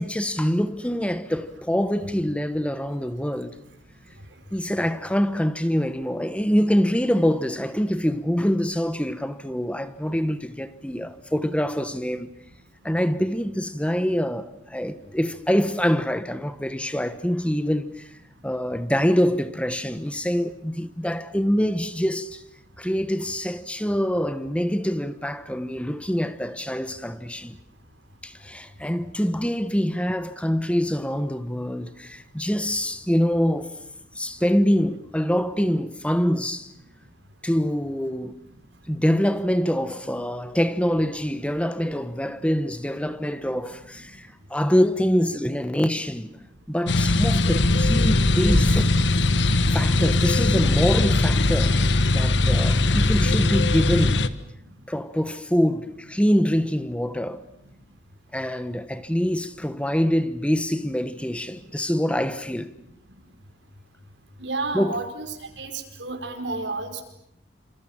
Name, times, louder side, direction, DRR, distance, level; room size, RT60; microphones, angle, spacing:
voice 1, 0.0-3.6 4.5-12.3 12.8-18.1 18.4-22.4 22.8-27.6 28.2-33.7 34.1-36.7 37.4-38.4 38.9-46.4 46.7-49.0 49.7-54.3 54.9-57.4 58.3-62.7 64.7-65.0, equal, 5° left, 1.1 m, -25 dB
sound 1, 46.9-54.3, left 2 dB, 80° left, 1.4 m, -20 dB
voice 2, 64.4-65.3 65.6-65.7 66.0-67.0, right 3 dB, 90° right, 5.3 m, -30 dB
28.0 x 27.5 x 7.5 m
head